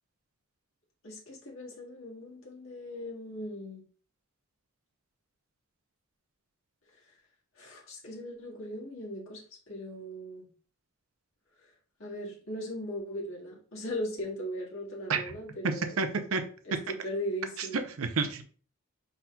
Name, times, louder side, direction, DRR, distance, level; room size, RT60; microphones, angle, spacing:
voice 1, 1.0-3.8 7.0-7.1 7.6-10.5 12.0-16.1 16.7-17.9, equal, 65° left, -4 dB, 1.8 m, -38 dB
voice 2, 15.6-16.4 17.6-18.4, right 4 dB, 75° right, 7 dB, 0.6 m, -30 dB
5.7 x 3.9 x 2.3 m, 0.43 s
head